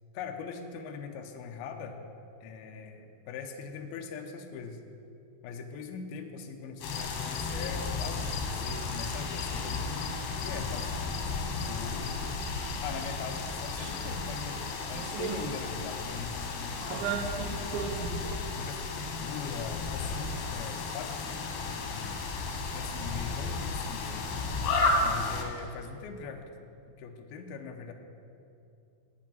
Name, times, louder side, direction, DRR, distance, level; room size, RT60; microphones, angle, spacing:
voice 1, 0.1-2.0 2.4-4.8 5.4-10.9 11.6-12.3 12.8-14.6 14.9-17.6 18.5-21.2 21.6-22.2 22.7-24.3 25.0-26.4 27.0-27.9, left 5 dB, 90° left, 4 dB, 2.1 m, -41 dB
sound 1, 6.8-25.4, left 3 dB, 70° left, 3.0 m, -33 dB
Slam, 10.8-11.4 12.6-13.0 13.3-13.4 13.7-13.8 14.3-15.5 17.2-17.9 19.5-19.6 20.0-20.5 21.6-21.7 22.1-22.2 23.0-23.2 24.9-25.0 25.4-26.0, equal, 25° right, 0.8 m, -51 dB
sound 2, 13.8-14.0 14.3-14.4 14.9-15.9 16.2-16.5 16.8-18.4, right 7 dB, 80° right, 3.0 m, -36 dB
8.6 x 8.5 x 8.8 m, 2.7 s
omnidirectional pair, 5.5 m